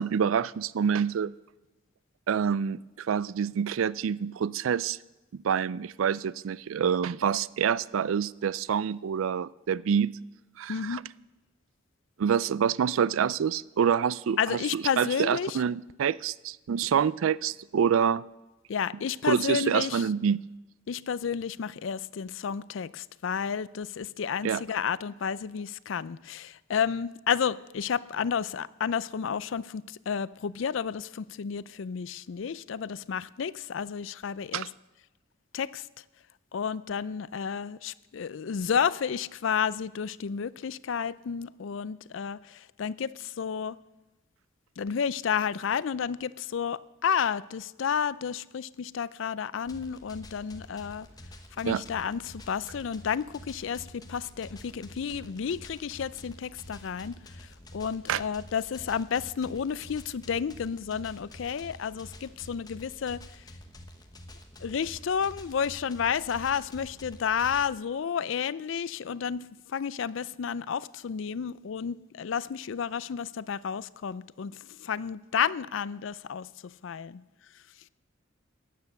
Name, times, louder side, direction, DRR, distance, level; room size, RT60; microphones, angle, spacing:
voice 1, 0.0-1.3 2.3-5.0 5.4-10.2 10.6-11.0 12.2-18.2 19.2-20.4 24.4-24.6 34.5-34.7 51.6-51.8 58.1-58.2, right 7 dB, 75° right, 0.4 m, -27 dB
voice 2, 10.7-11.0 14.4-15.6 18.7-20.1 20.9-34.7 35.5-35.9 36.5-43.8 44.8-51.1 51.6-63.2 64.6-77.2, left 7 dB, 65° left, 0.4 m, -31 dB
sound 1, 49.6-67.7, left 1 dB, 20° left, 1.1 m, -48 dB
15.0 x 9.5 x 6.6 m
head